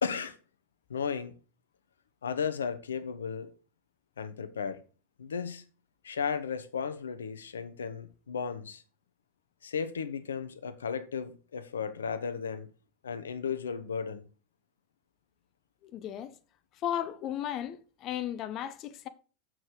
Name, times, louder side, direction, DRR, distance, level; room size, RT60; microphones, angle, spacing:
voice 1, 0.0-0.4 0.9-1.4 2.2-3.5 4.2-4.8 5.2-5.6 6.0-8.8 9.6-12.7 13.0-14.3, left 6 dB, 85° left, 1.0 m, -34 dB
voice 2, 15.8-16.3 16.7-19.1, left 10 dB, 45° left, 0.9 m, -35 dB
7.6 x 6.4 x 5.1 m
hypercardioid pair, 90°, 0 cm